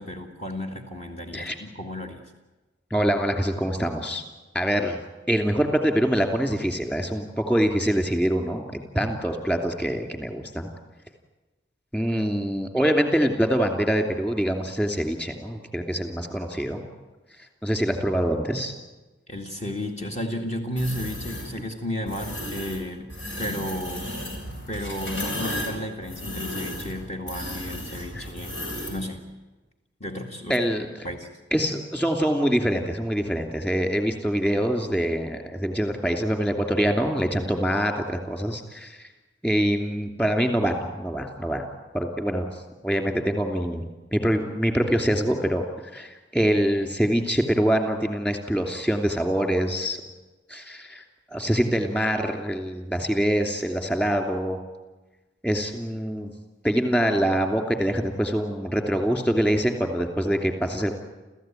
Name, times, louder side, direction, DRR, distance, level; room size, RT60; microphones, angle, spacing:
voice 1, 0.0-2.2 19.3-23.1 23.4-24.2 24.5-28.6 28.9-29.2 30.0-30.6 31.0-31.3, left 1 dB, 35° left, 2 dB, 2.1 m, -33 dB
voice 2, 2.9-4.2 4.5-5.0 5.3-10.7 11.9-16.8 17.6-18.7 28.1-28.3 30.5-30.9 31.5-39.0 39.4-41.6 41.9-42.5 42.8-43.8 44.1-45.6 45.9-50.0 50.5-51.0 51.3-54.6 55.4-56.3 56.6-60.9, equal, 10° left, 4 dB, 2.9 m, -24 dB
sound 1, 20.8-21.5 22.1-22.8 23.1-29.0, equal, 80° left, 7.2 m, -34 dB
29.5 x 15.0 x 9.2 m, 1.1 s
head